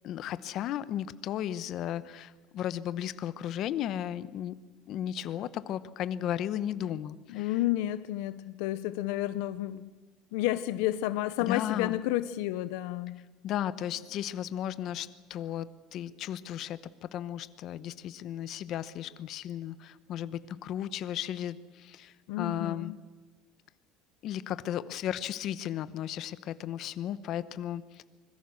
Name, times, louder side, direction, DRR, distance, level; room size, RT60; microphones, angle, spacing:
voice 1, 0.0-4.6 4.9-7.5 11.4-12.0 13.4-22.9 24.2-28.0, left 11 dB, 45° left, 0.9 m, -35 dB
voice 2, 7.3-9.9 10.3-13.2 22.3-23.0, left 15 dB, 75° left, 0.6 m, -31 dB
25.0 x 21.5 x 6.4 m
cardioid pair, 155°, 0 cm